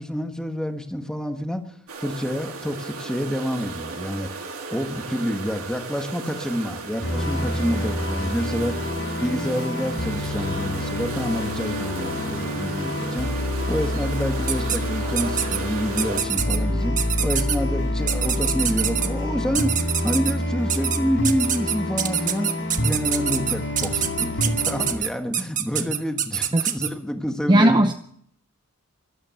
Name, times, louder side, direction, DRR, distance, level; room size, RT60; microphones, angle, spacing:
voice 1, 0.0-1.6 2.0-4.3 4.7-8.8 9.2-13.4 13.7-27.8, equal, 5° left, 6 dB, 1.4 m, -28 dB
sound 1, 1.9-16.2, right 4 dB, 70° right, 3.1 m, -35 dB
sound 2, 7.0-24.9, left 1 dB, 60° left, 7.4 m, -27 dB
sound 3, 14.5-14.8 15.2-15.6 16.0-16.6 17.0-17.6 18.1-19.1 19.6-20.3 20.7-21.0 21.2-26.9, right 9 dB, 35° right, 1.3 m, -25 dB
voice 2, 27.5-27.9, right 1 dB, 20° right, 7 dB, 0.7 m, -16 dB
13.5 x 12.5 x 7.6 m, 0.67 s
head